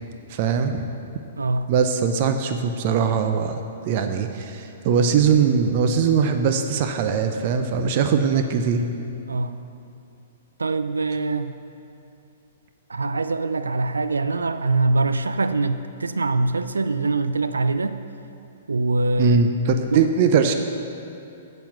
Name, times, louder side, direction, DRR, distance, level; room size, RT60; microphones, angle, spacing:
voice 1, 0.3-0.8 1.7-3.6 3.9-8.9 19.2-20.5, right 6 dB, 45° right, 6 dB, 0.6 m, -21 dB
voice 2, 1.4-1.7 9.3-9.6 10.6-11.5 12.9-18.0 18.7-19.4 19.9-20.0, right 3 dB, 90° right, 11 dB, 0.4 m, -23 dB
7.8 x 7.0 x 7.4 m, 2.7 s
hypercardioid pair, 120°, 0 cm